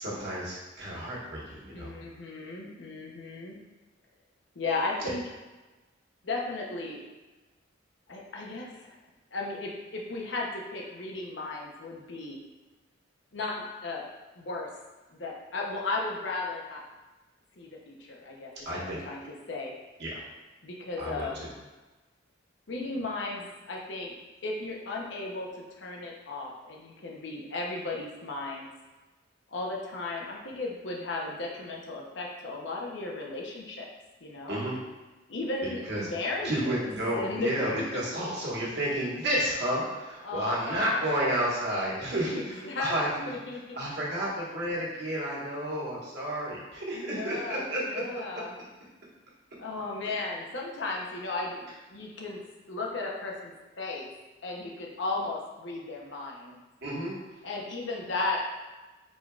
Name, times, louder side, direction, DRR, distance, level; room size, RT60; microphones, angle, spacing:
voice 1, 0.0-1.9 5.0-5.1 18.6-19.0 20.0-20.2 21.0-21.3 34.5-34.8 35.9-36.1 36.4-43.2 43.7-48.0 56.8-57.1, right 1 dB, 60° right, -6 dB, 1.4 m, -31 dB
voice 2, 1.7-3.6 4.5-5.2 6.2-7.0 8.1-9.0 9.3-12.4 13.3-14.1 14.4-14.7 15.1-16.8 17.6-18.5 18.8-19.2 19.5-19.7 20.6-21.4 22.7-24.1 24.4-25.5 25.8-28.7 29.5-33.9 34.2-34.6 35.3-36.9 37.1-37.6 40.2-41.1 41.7-41.9 42.2-43.0 43.3-43.8 46.9-48.6 49.6-52.4 52.7-54.1 54.4-56.6 57.4-58.5, left 3 dB, 65° left, -1 dB, 0.8 m, -35 dB
4.6 x 4.3 x 2.4 m, 1.2 s
head